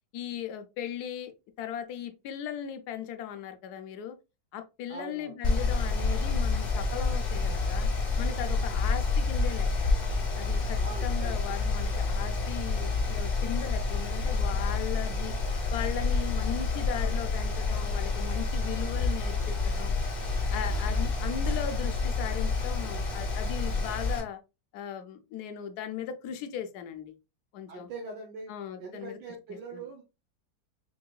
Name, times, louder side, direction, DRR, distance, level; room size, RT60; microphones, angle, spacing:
voice 1, 0.1-1.3 1.6-4.2 4.5-7.9 8.2-9.9 10.4-15.4 15.7-20.0 20.5-24.4 24.7-27.2 27.5-27.9 28.5-29.2 29.5-29.8, left 9 dB, 70° left, 1.1 m, -38 dB
voice 2, 4.9-5.3 10.8-11.6 27.7-30.0, right 3 dB, 85° right, 1.4 m, -42 dB
Mechanical fan, 5.4-24.2, left 3 dB, 35° left, 0.8 m, -28 dB
4.8 x 3.0 x 2.2 m
omnidirectional pair, 1.8 m